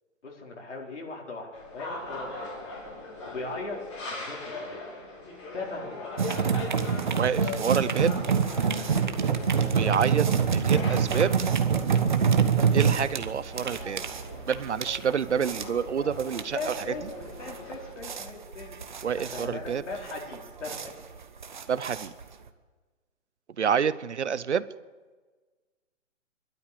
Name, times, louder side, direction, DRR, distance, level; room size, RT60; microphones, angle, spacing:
voice 1, 0.2-2.5 3.2-3.8 4.1-4.8 5.5-6.1 16.5-18.7 19.1-21.0, left 3 dB, 65° left, -1 dB, 4.7 m, -38 dB
sound 1, 1.5-17.9, left 2 dB, 25° left, 4.0 m, -41 dB
sound 2, 6.2-22.5, right 6 dB, 35° right, 1.2 m, -26 dB
voice 2, 7.2-8.2 9.7-11.3 12.7-14.0 14.5-16.7 19.0-19.8 21.7-22.1 23.6-24.6, right 7 dB, 60° right, 17 dB, 0.9 m, -28 dB
24.5 x 12.5 x 8.5 m, 1.4 s
hypercardioid pair, 175°, 39 cm